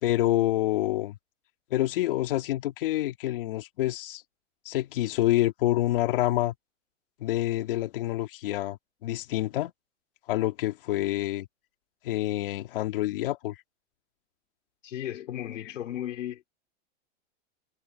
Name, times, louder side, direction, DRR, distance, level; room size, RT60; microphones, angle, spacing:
voice 1, 0.0-1.2 1.7-4.2 4.7-6.5 7.2-9.7 10.3-11.5 12.0-13.6, left 15 dB, 45° left, 2.3 m, -27 dB
voice 2, 14.8-16.4, left 11 dB, 80° left, 3.9 m, -35 dB
supercardioid pair, 175°, 37 cm